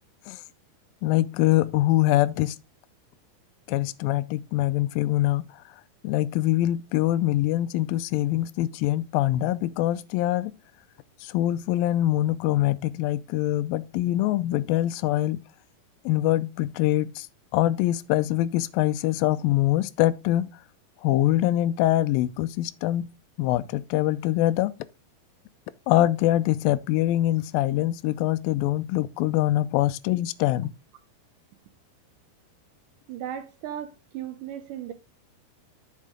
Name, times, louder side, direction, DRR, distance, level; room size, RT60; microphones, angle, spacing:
voice 1, 1.0-2.6 3.7-5.5 6.0-10.6 11.2-15.4 16.1-17.3 17.5-20.5 21.0-23.1 23.4-24.7 25.9-30.7, left 14 dB, 80° left, 2.2 m, -24 dB
voice 2, 33.1-34.9, right 10 dB, 80° right, 1.9 m, -36 dB
8.1 x 6.4 x 3.7 m
omnidirectional pair, 4.3 m